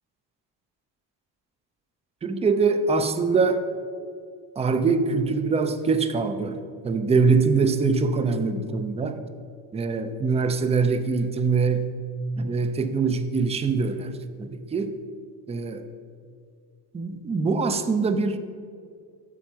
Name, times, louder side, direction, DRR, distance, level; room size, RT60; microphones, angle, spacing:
voice 1, 2.2-3.7 4.6-6.6 6.8-9.2 9.7-11.9 12.4-14.1 14.4-15.0 15.5-15.8 16.9-18.4, right 4 dB, 15° right, 9 dB, 0.4 m, -23 dB
8.5 x 6.0 x 4.5 m, 2.2 s
cardioid pair, 115°, 41 cm